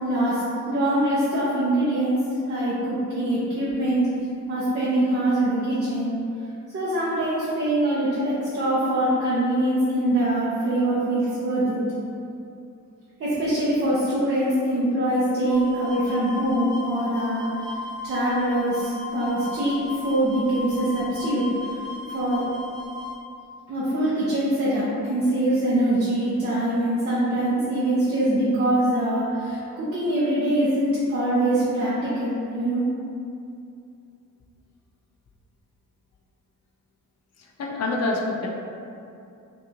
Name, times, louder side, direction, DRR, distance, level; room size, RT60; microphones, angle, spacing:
voice 1, 0.0-2.2 2.5-4.1 4.5-6.1 6.7-11.8 13.2-17.5 18.0-21.8 22.1-22.4 23.7-32.8, right 1 dB, 45° right, -9 dB, 0.8 m, -23 dB
sound 1, 15.5-23.2, left 3 dB, 15° right, 0.5 m, -36 dB
voice 2, 37.4-38.5, left 2 dB, 55° left, -1 dB, 0.6 m, -27 dB
5.5 x 2.6 x 2.8 m, 2.6 s
wide cardioid pair, 160°, 32 cm